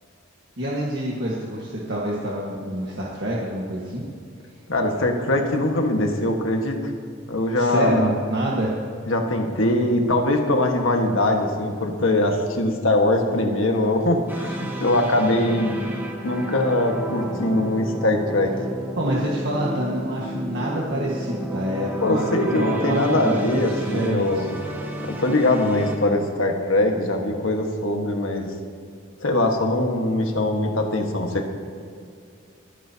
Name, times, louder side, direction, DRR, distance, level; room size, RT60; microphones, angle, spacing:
voice 1, 0.6-4.0 7.5-8.7 19.0-24.5, right 1 dB, 55° right, -4 dB, 1.7 m, -27 dB
voice 2, 4.7-6.8 7.3-8.1 9.1-15.8 16.2-18.5 22.0-24.5 25.2-28.5 29.2-31.5, left 1 dB, 75° left, 3 dB, 1.7 m, -22 dB
sound 1, 14.3-26.0, right 1 dB, 10° right, 1.3 m, -32 dB
27.5 x 10.0 x 2.9 m, 2.3 s
head